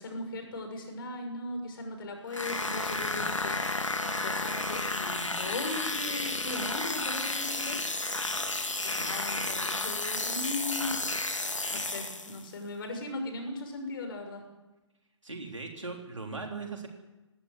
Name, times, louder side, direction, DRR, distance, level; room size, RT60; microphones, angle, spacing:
voice 1, 0.0-7.8 8.5-10.9 11.4-14.4, left 2 dB, 45° left, 4 dB, 6.6 m, -38 dB
sound 1, 2.3-12.5, left 2 dB, 85° left, 2.1 m, -32 dB
voice 2, 15.2-16.9, right 3 dB, 85° right, 2 dB, 3.6 m, -39 dB
18.5 x 17.0 x 9.6 m, 1.1 s
figure-of-eight pair, 130°, 16 cm